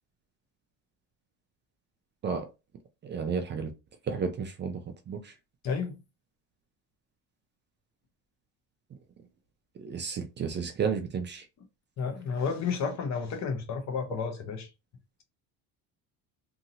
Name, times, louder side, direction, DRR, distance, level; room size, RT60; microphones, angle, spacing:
voice 1, 3.1-3.7 4.1-4.8 5.1-5.2 9.8-11.4, right 6 dB, 30° right, 0.4 m, -32 dB
voice 2, 5.6-6.0 12.0-14.7, left 5 dB, 45° left, 0.9 m, -31 dB
2.8 x 2.7 x 2.7 m
cardioid pair, 125°, 37 cm